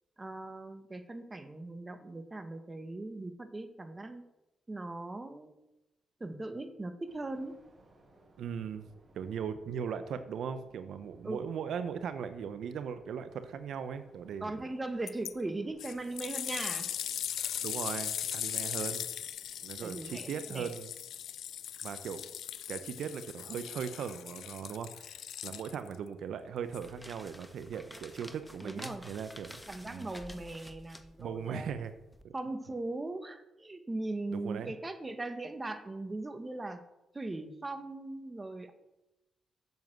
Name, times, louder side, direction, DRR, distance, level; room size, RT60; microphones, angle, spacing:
voice 1, 0.2-4.3 4.7-5.6 6.2-7.6 11.2-11.5 14.4-16.9 19.8-20.7 28.6-29.1 29.7-31.7 32.3-36.8 37.1-38.7, right 2 dB, 25° right, 8 dB, 1.7 m, -39 dB
sound 1, 7.1-23.0, right 2 dB, 50° right, 4.6 m, -64 dB
voice 2, 8.4-8.9 9.1-14.6 17.6-19.1 19.6-20.9 21.8-22.2 22.7-29.6 29.8-30.1 31.2-31.9 32.2-32.3 34.3-34.7, right 7 dB, 75° right, 11 dB, 0.8 m, -39 dB
sound 2, 15.1-15.3 15.8-26.0 26.7-26.8, left 10 dB, 75° left, 0.5 m, -39 dB
sound 3, 26.6-32.2, left 1 dB, 10° left, 1.3 m, -51 dB
8.0 x 7.1 x 7.8 m, 0.94 s
supercardioid pair, 50°, 0 cm